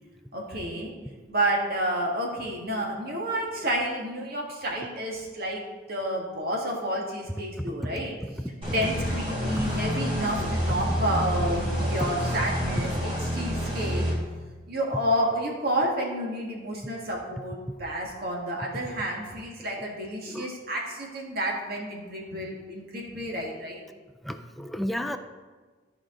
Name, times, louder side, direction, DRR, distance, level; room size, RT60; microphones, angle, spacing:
voice 1, 0.3-0.9 1.3-5.6 5.9-8.1 8.6-14.0 14.7-23.8, right 1 dB, 55° right, -1 dB, 1.7 m, -30 dB
voice 2, 7.6-7.9 20.3-20.5 24.2-25.2, equal, ahead, 6 dB, 0.4 m, -32 dB
sound 1, 8.6-14.1, equal, 30° right, 2.5 m, -28 dB
12.5 x 5.0 x 3.8 m, 1.4 s
head